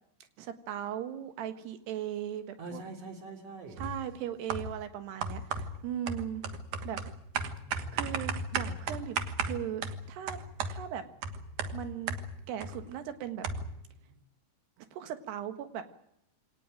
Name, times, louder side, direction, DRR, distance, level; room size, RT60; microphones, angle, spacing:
voice 1, 0.4-2.8 3.8-6.4 6.8-7.0 7.9-10.4 10.7-11.0 11.7-12.2 12.5-13.5 14.8-15.8, right 10 dB, 75° right, 9 dB, 3.6 m, -38 dB
voice 2, 2.6-3.8 7.4-8.3, right 2 dB, 40° right, 4 dB, 4.0 m, -45 dB
sound 1, 3.8-4.0 4.5-4.8 5.2-12.8 13.1-13.2 13.4-13.8, right 4 dB, 60° right, 2.4 m, -35 dB
24.5 x 18.0 x 9.1 m, 0.78 s
omnidirectional pair, 4.9 m